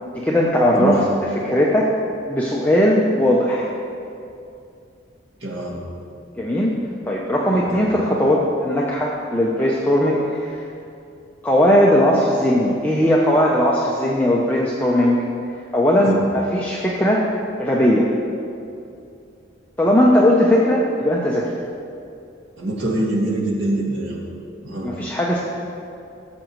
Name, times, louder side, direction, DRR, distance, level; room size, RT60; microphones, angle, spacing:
voice 1, 0.1-1.0 1.4-1.9 2.3-3.7 6.4-6.8 7.1-10.6 11.4-15.2 15.7-17.3 17.6-18.1 19.8-21.5 24.8-25.4, equal, 10° left, -4 dB, 0.7 m, -18 dB
voice 2, 0.8-1.1 5.4-5.8 7.5-7.8 16.0-16.2 22.6-24.2 24.6-24.9, right 1 dB, 65° right, -4 dB, 2.2 m, -24 dB
18.0 x 7.6 x 3.1 m, 2.6 s
head